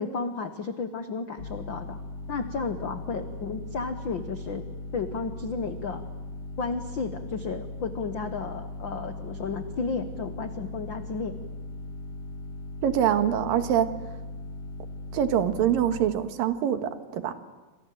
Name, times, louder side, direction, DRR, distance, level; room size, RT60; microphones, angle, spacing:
voice 1, 0.0-2.0 2.3-4.7 4.9-6.0 6.6-11.4, left 4 dB, 80° left, 8 dB, 1.0 m, -33 dB
sound 1, 1.4-16.1, left 2 dB, 45° left, 2.0 m, -39 dB
voice 2, 12.8-13.9 15.1-17.3, right 10 dB, 80° right, 9 dB, 3.2 m, -24 dB
29.0 x 26.0 x 7.7 m, 1.2 s
omnidirectional pair, 4.0 m